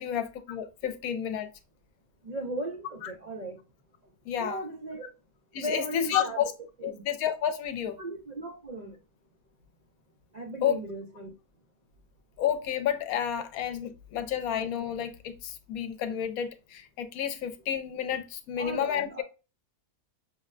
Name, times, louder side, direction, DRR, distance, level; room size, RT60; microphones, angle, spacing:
voice 1, 0.0-1.5 3.0-3.1 4.3-4.6 5.5-6.5 6.8-8.0 10.6-10.8 12.4-19.1, left 9 dB, 75° left, 1.0 m, -30 dB
voice 2, 2.2-3.6 4.0-4.1 4.4-5.1 5.6-6.4 6.8-7.0 8.0-9.0 10.3-11.3 18.6-19.2, right 1 dB, 70° right, 0.4 m, -37 dB
5.7 x 2.1 x 2.4 m
omnidirectional pair, 1.6 m